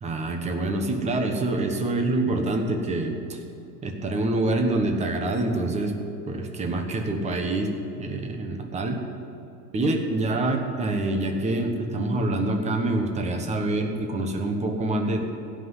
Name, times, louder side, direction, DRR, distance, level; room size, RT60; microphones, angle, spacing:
voice 1, 0.0-3.4 3.8-5.9 6.3-7.7 8.0-9.0 9.7-15.3, right 2 dB, 15° right, 4 dB, 1.2 m, -26 dB
16.5 x 6.1 x 9.8 m, 2.8 s
supercardioid pair, 145°, 49 cm